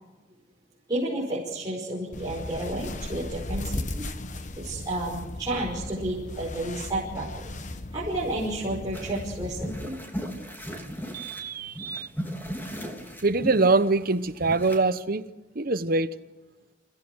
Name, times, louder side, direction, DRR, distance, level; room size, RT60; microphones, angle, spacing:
voice 1, 0.9-4.0 4.3-7.5 7.9-9.9, right 1 dB, 20° right, 5.6 m, -31 dB
sound 1, 2.1-9.9, left 1 dB, 40° left, 1.2 m, -37 dB
sound 2, 8.9-14.8, equal, 10° left, 3.1 m, -37 dB
voice 2, 11.1-12.1 13.2-15.2 15.5-16.1, right 3 dB, 45° right, 0.9 m, -24 dB
29.5 x 17.0 x 6.4 m
head